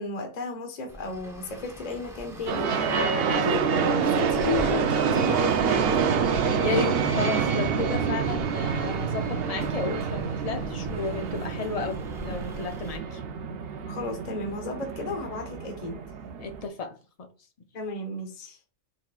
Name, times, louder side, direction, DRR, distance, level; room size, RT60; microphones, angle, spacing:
voice 1, 0.0-5.8 13.9-16.0 17.7-18.6, left 3 dB, 40° left, 0.9 m, -33 dB
Traffic noise roadway noise, 0.9-13.0, equal, 5° right, 0.6 m, -42 dB
sound 1, 2.5-16.7, right 6 dB, 60° right, 0.7 m, -27 dB
voice 2, 6.6-13.2 16.4-17.3, left 4 dB, 65° left, 0.3 m, -33 dB
4.2 x 4.1 x 2.4 m
omnidirectional pair, 1.3 m